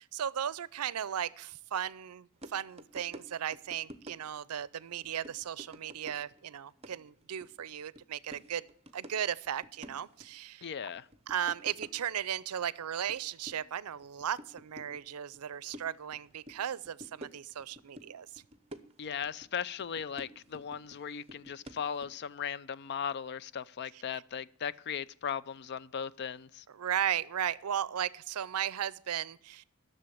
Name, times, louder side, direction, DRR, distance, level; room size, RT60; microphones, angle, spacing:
voice 1, 0.0-8.6 8.9-10.7 11.3-18.4 23.9-24.2 26.7-29.6, right 9 dB, 75° right, 0.5 m, -36 dB
sound 1, 2.4-2.5 2.8-3.3 3.5-4.6 4.9-6.5 6.8-7.6 8.0-8.1 8.3-9.1 9.5-10.3 11.0-12.1 12.6-13.2 13.4-15.0 15.3-16.5 16.9-18.1 18.4-19.5 19.8-21.0 21.3-22.1, equal, 30° right, 0.7 m, -48 dB
voice 2, 10.6-11.0 19.0-26.6, left 7 dB, 50° left, 0.4 m, -37 dB
10.5 x 6.8 x 8.4 m
head